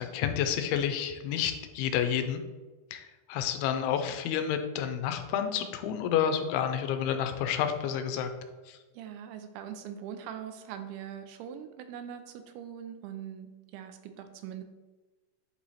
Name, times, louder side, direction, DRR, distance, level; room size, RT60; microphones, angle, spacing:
voice 1, 0.0-2.4 2.9-8.3 8.7-8.8, left 9 dB, 90° left, 7 dB, 2.6 m, -30 dB
voice 2, 9.0-14.6, right 9 dB, 90° right, 8 dB, 2.6 m, -42 dB
8.1 x 3.0 x 4.2 m, 1.2 s
omnidirectional pair, 4.4 m